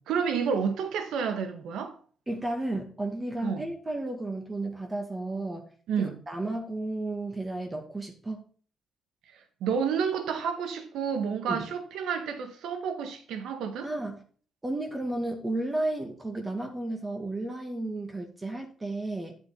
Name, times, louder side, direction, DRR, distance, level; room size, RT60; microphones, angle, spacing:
voice 1, 0.1-2.0 3.4-3.6 5.9-6.2 9.3-13.9, right 6 dB, 80° right, 1.7 m, -30 dB
voice 2, 2.3-5.7 6.0-8.5 11.5-11.6 13.8-14.2 14.6-19.3, right 2 dB, 20° right, 2.0 m, -33 dB
9.8 x 7.4 x 4.0 m
cardioid pair, 90°, 0 cm